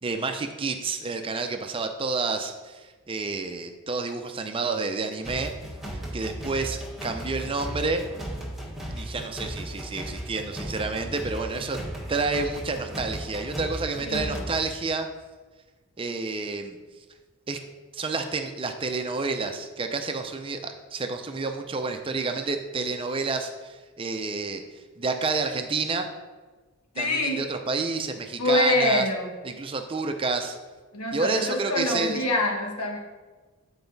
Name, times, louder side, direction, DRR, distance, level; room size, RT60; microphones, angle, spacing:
voice 1, 0.0-5.6 6.1-8.0 8.9-11.8 12.1-15.1 16.0-16.8 17.5-17.6 17.9-26.1 27.0-29.0 29.4-30.6 31.1-32.2, right 3 dB, 25° right, 6 dB, 0.5 m, -29 dB
Percussion Loop, 5.2-14.6, equal, ahead, 1.3 m, -36 dB
voice 2, 14.0-14.4 26.9-27.4 28.4-29.3 30.9-33.0, left 1 dB, 90° left, 1 dB, 1.4 m, -25 dB
8.9 x 4.8 x 4.0 m, 1.3 s
head